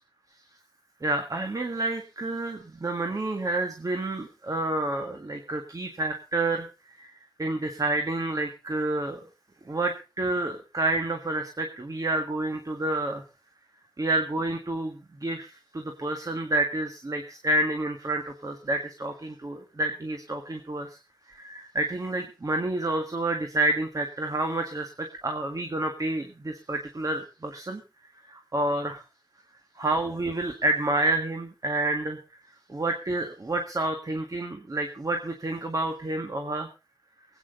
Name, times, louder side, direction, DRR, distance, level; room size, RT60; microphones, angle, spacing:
voice 1, 1.0-6.7 7.0-7.1 7.4-9.2 9.7-13.2 14.0-21.0 21.3-27.8 28.3-29.0 29.8-32.2 32.7-36.7, right 2 dB, 50° right, 5 dB, 1.8 m, -29 dB
23.0 x 9.1 x 3.8 m, 0.31 s
wide cardioid pair, 85°, 8 cm